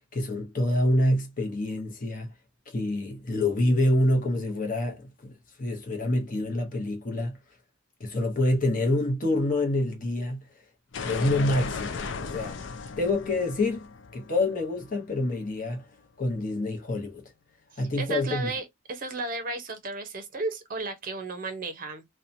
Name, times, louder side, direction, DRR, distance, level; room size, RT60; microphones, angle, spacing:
voice 1, 0.1-2.3 2.7-7.4 8.0-10.4 11.0-12.6 13.0-15.8 16.2-17.2 17.8-18.5, left 1 dB, 40° left, 0.8 m, -27 dB
sound 1, 10.9-15.7, left 5 dB, 60° left, 0.4 m, -36 dB
voice 2, 18.0-22.0, right 3 dB, 40° right, 0.6 m, -34 dB
2.8 x 2.2 x 2.5 m
head